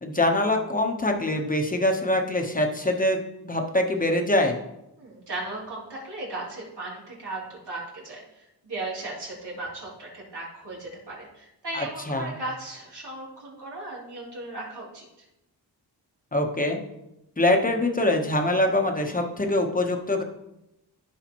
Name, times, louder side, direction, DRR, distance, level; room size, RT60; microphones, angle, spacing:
voice 1, 0.0-4.6 11.7-12.3 16.3-16.8 17.4-20.2, left 1 dB, 20° left, 3 dB, 1.1 m, -24 dB
voice 2, 5.0-15.1, right 2 dB, 75° right, -5 dB, 3.3 m, -36 dB
14.5 x 4.9 x 3.1 m, 0.89 s
wide cardioid pair, 110°, 41 cm